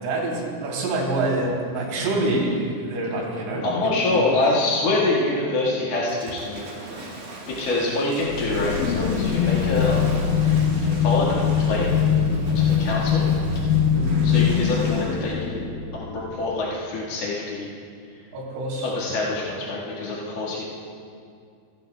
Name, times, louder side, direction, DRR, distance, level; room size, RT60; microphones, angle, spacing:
voice 1, 0.0-4.6 4.9-5.0 13.9-14.3 18.3-18.9, right 2 dB, 70° right, -2 dB, 4.6 m, -27 dB
voice 2, 3.6-6.6 7.5-11.9 12.5-13.3 14.2-15.7 15.9-17.7 18.8-20.6, left 2 dB, 65° left, -6 dB, 1.6 m, -25 dB
Waves surf / Splash splatter, 6.1-15.4, right 2 dB, 55° right, 3.3 m, -39 dB
sound 1, 8.3-16.5, left 7 dB, 80° left, 2.8 m, -22 dB
16.0 x 15.5 x 2.2 m, 2.3 s
omnidirectional pair, 5.5 m